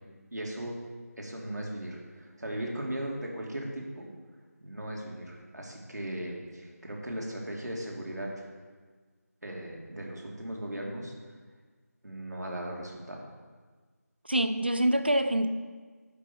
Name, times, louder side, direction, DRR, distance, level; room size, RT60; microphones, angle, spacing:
voice 1, 0.3-0.8 1.2-4.1 4.6-8.5 9.4-11.1 12.0-13.3, right 1 dB, 80° right, 2.7 m, -37 dB
voice 2, 14.2-15.5, right 1 dB, 40° right, 0.5 m, -25 dB
10.0 x 5.6 x 7.1 m
figure-of-eight pair, 180°, 9 cm